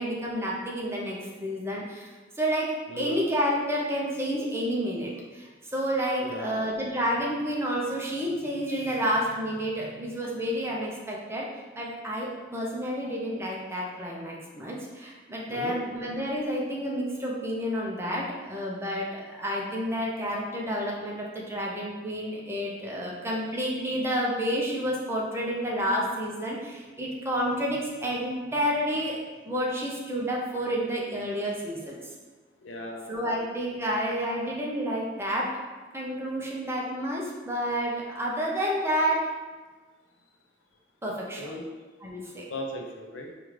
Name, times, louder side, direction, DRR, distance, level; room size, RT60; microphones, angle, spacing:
voice 1, 0.0-11.5 11.7-29.2 29.4-32.0 33.1-35.5 35.9-39.3 41.0-41.5 42.0-42.4, equal, 15° right, -3 dB, 0.6 m, -30 dB
voice 2, 2.9-3.2 6.2-6.6 15.5-15.8 32.6-33.2 41.4-41.7 42.5-43.3, left 1 dB, 85° left, 1 dB, 0.6 m, -37 dB
4.7 x 2.4 x 3.1 m, 1.3 s
head